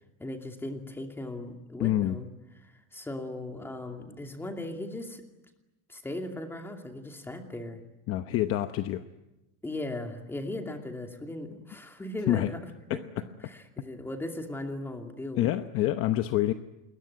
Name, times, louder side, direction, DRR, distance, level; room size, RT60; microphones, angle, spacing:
voice 1, 0.2-2.3 2.6-5.2 5.9-7.8 9.6-12.6 12.9-13.0 13.4-15.7, left 1 dB, 5° left, 4 dB, 2.6 m, -38 dB
voice 2, 1.8-2.2 8.1-9.0 12.3-12.5 12.9-13.0 15.4-16.5, left 14 dB, 40° left, 9 dB, 0.9 m, -26 dB
27.5 x 21.5 x 9.5 m, 0.98 s
cardioid pair, 165°, 35 cm